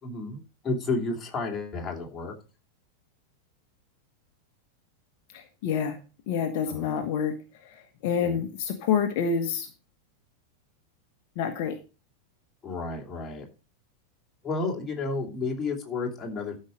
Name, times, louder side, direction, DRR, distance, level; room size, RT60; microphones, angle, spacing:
voice 1, 0.0-2.3 6.7-7.1 8.2-8.4 12.6-13.5 14.4-16.6, left 3 dB, 20° left, 0 dB, 3.0 m, -32 dB
voice 2, 5.3-6.0 6.3-7.3 7.6-9.7 11.4-11.8, left 7 dB, 45° left, 5 dB, 1.3 m, -28 dB
12.5 x 5.5 x 5.0 m, 0.32 s
figure-of-eight pair, 90°, 0 cm